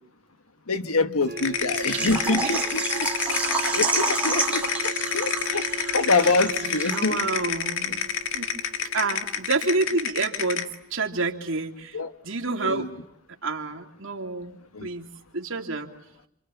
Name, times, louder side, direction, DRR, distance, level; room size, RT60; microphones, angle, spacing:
voice 1, 0.7-3.4 3.7-7.2 11.9-12.1 12.6-12.9 14.7-14.9, left 3 dB, 85° left, 1.6 m, -26 dB
sound 1, 1.3-10.9, right 4 dB, 40° right, 1.0 m, -39 dB
sound 2, 1.4-10.7, left 7 dB, 65° left, 1.8 m, -29 dB
Water / Liquid, 1.8-7.4 7.6-7.7 8.2-8.3, right 3 dB, 5° right, 2.5 m, -29 dB
voice 2, 1.9-2.8 3.6-3.8 6.1-6.3 6.9-8.1 8.3-8.5 8.9-12.0 12.2-12.9 13.4-15.9, right 3 dB, 65° right, 3.1 m, -29 dB
28.0 x 28.0 x 7.2 m
head